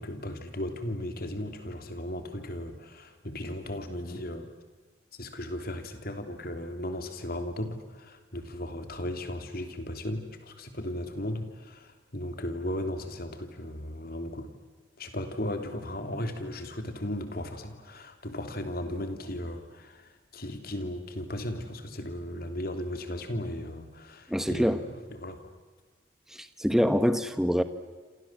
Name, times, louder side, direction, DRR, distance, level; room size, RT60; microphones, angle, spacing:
voice 1, 0.0-4.5 5.2-14.5 15.0-25.4, left 1 dB, 50° left, 7 dB, 3.2 m, -36 dB
voice 2, 24.3-24.8 26.6-27.6, equal, ahead, 10 dB, 1.2 m, -24 dB
29.0 x 27.5 x 7.6 m, 1.4 s
head